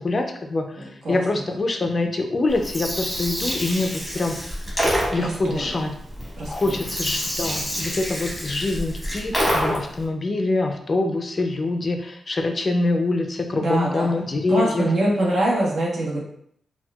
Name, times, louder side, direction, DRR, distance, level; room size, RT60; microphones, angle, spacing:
voice 1, 0.0-4.4 5.1-5.9 6.5-14.9, left 2 dB, 35° left, 4 dB, 0.4 m, -25 dB
voice 2, 0.8-1.2 5.2-5.8 6.4-6.9 13.5-14.1 14.5-16.2, right 1 dB, 70° right, -3 dB, 1.0 m, -24 dB
Gurgling, 2.5-10.0, equal, 5° right, 1.1 m, -27 dB
4.3 x 2.2 x 2.2 m, 0.68 s
wide cardioid pair, 140°, 0 cm